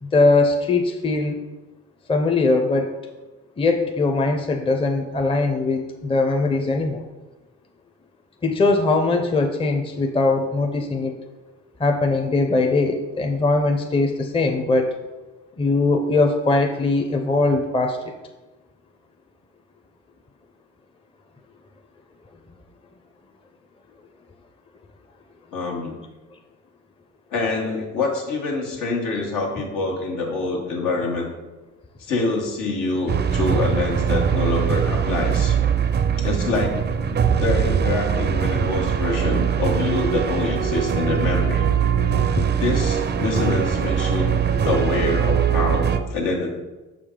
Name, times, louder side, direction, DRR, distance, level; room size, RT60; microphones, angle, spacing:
voice 1, 0.0-1.4 2.1-2.9 3.6-7.0 8.4-11.2 11.8-15.0 15.6-18.0 42.4-42.5, left 3 dB, 20° left, 3 dB, 0.6 m, -21 dB
voice 2, 25.5-25.9 27.3-31.3 32.0-35.5 36.2-36.9 37.4-41.7 42.6-46.6, left 3 dB, 90° left, -1 dB, 1.4 m, -25 dB
sound 1, 33.1-46.0, right 7 dB, 35° right, 0.4 m, -21 dB
6.0 x 5.0 x 3.7 m, 1.1 s
cardioid pair, 90°, 30 cm